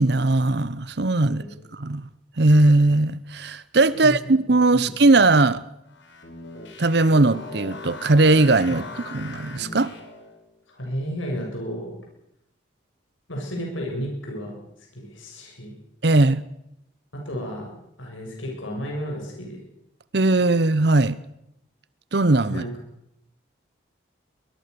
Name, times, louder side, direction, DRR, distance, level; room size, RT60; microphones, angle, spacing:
voice 1, 0.0-1.4 1.7-2.0 2.4-5.6 6.8-8.8 9.1-9.9 16.0-16.4 20.1-21.2 22.1-22.6, right 2 dB, 60° right, 0.8 m, -19 dB
voice 2, 1.3-1.6 3.9-4.2 4.7-4.9 8.7-8.8 10.7-11.9 13.3-15.7 17.1-19.6 22.5-22.7, equal, 90° left, 7.5 m, -33 dB
sound 1, 5.9-10.4, left 2 dB, 75° left, 5.1 m, -38 dB
23.5 x 20.5 x 6.9 m
head